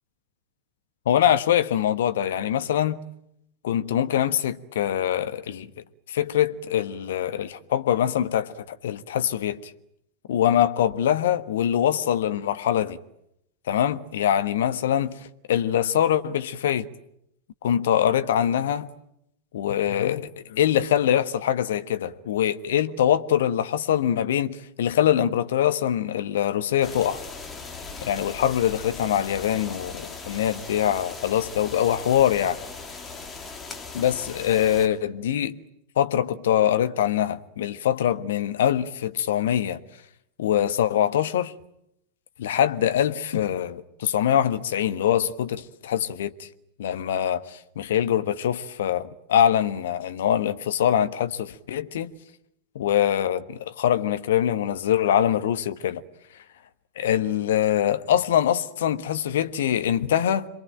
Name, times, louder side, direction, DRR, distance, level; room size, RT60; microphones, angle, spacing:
voice 1, 1.0-3.0 3.6-5.7 6.1-9.7 10.3-13.0 13.7-16.9 17.6-18.9 19.5-27.2 28.0-32.6 33.9-35.6 36.0-39.8 40.4-41.5 42.4-46.5 46.8-52.1 52.7-56.0 57.0-60.5, left 10 dB, 60° left, 1.3 m, -23 dB
sound 1, 26.8-34.9, left 4 dB, 15° left, 3.2 m, -39 dB
27.0 x 22.5 x 9.0 m
figure-of-eight pair, 90°, 0 cm